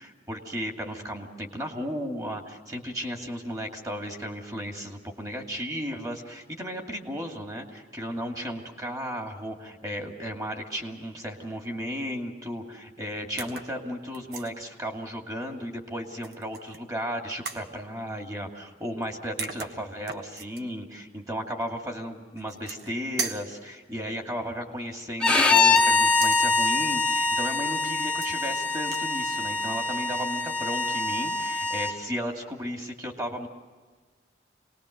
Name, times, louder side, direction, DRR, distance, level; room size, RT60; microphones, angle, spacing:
voice 1, 0.0-33.5, equal, 20° right, 2 dB, 2.4 m, -35 dB
sound 1, 13.4-13.7 14.1-14.5 16.2-16.8 17.4-17.7 19.0-19.1 19.4-20.6 22.4-22.9 23.2-23.5 25.5-26.4 28.0-28.5 28.8-29.1, right 5 dB, 65° right, 1.4 m, -37 dB
Bowed string instrument, 25.2-31.9, left 3 dB, 5° left, 1.0 m, -24 dB
27.0 x 19.5 x 6.6 m, 1.4 s
head